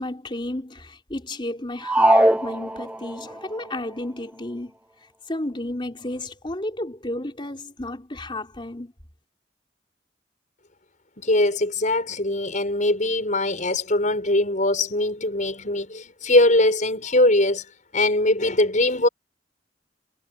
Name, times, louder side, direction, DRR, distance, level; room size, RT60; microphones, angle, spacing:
voice 1, 0.0-4.7 5.3-8.9, left 1 dB, 25° left, 3.7 m, -32 dB
sound 1, 1.8-3.3, right 1 dB, 10° right, 1.9 m, -20 dB
voice 2, 11.2-17.6 17.9-19.1, left 1 dB, 45° left, 6.8 m, -21 dB
head